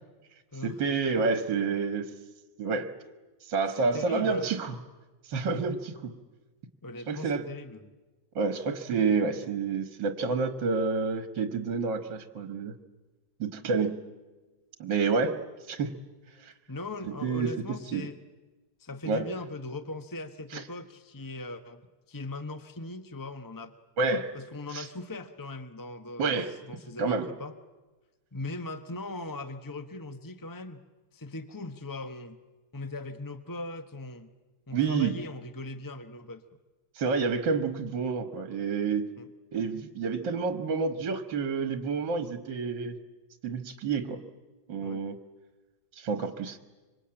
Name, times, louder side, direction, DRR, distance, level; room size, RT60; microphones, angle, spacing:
voice 1, 0.6-2.1 2.6-2.9 3.4-4.8 5.3-6.1 7.1-7.4 8.4-12.8 13.4-14.0 14.8-15.4 15.7-15.9 16.4-16.5 17.2-17.5 17.9-18.1 19.1-19.3 20.5-20.6 24.0-24.3 24.7-24.9 26.2-26.5 27.0-27.3 34.7-35.1 37.0-39.1 39.5-43.0 43.4-44.2 44.7-45.2 46.0-46.6, right 4 dB, 60° right, 9 dB, 2.1 m, -29 dB
voice 2, 3.8-4.6 5.5-5.6 6.8-7.9 13.6-13.7 16.7-18.2 18.8-21.8 22.1-23.7 24.3-27.5 28.3-30.8 31.1-32.4 32.7-34.3 34.7-36.4 39.2-39.3 44.8-45.0, left 2 dB, 20° left, 10 dB, 0.5 m, -39 dB
26.0 x 25.0 x 8.8 m, 1.2 s
omnidirectional pair, 2.2 m